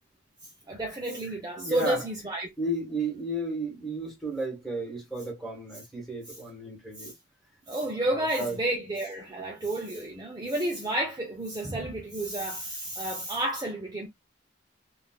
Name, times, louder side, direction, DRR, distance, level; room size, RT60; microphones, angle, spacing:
voice 1, 0.7-2.5 6.3-6.4 7.0-7.1 7.7-14.1, right 1 dB, 20° right, 0.6 m, -31 dB
voice 2, 1.6-2.0 2.6-7.1 8.1-8.5, right 1 dB, ahead, 1.5 m, -33 dB
3.6 x 2.5 x 2.3 m
head